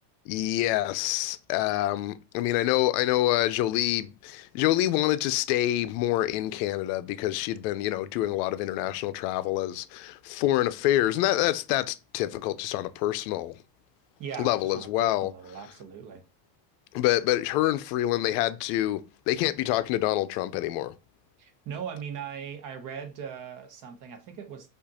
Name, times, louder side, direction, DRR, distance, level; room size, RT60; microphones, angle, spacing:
voice 1, 0.3-13.6 14.4-15.3 16.9-20.9, left 14 dB, 70° left, 0.6 m, -26 dB
voice 2, 14.2-16.2 21.4-24.7, right 7 dB, 40° right, 0.9 m, -39 dB
5.1 x 2.5 x 4.1 m
cardioid pair, 150°, 48 cm